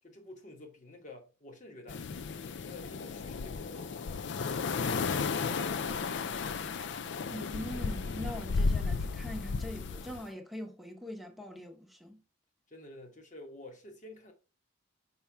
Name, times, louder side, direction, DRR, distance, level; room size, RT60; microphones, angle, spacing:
voice 1, 0.0-2.1 2.6-6.6 12.7-14.3, left 2 dB, 35° left, 1.2 m, -50 dB
sound 1, 1.9-10.2, left 4 dB, 55° left, 0.4 m, -34 dB
voice 2, 7.3-12.2, equal, ahead, 1.0 m, -42 dB
5.7 x 5.5 x 3.4 m
head